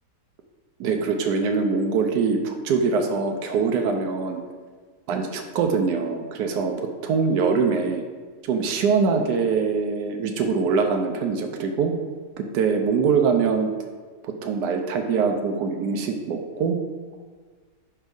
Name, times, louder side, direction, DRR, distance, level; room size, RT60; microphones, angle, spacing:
voice 1, 0.8-4.4 5.1-6.7 7.0-8.0 8.4-11.9 12.4-13.7 14.2-16.8, right 5 dB, 75° right, 4 dB, 1.1 m, -23 dB
4.8 x 4.4 x 5.2 m, 1.5 s
omnidirectional pair, 1.8 m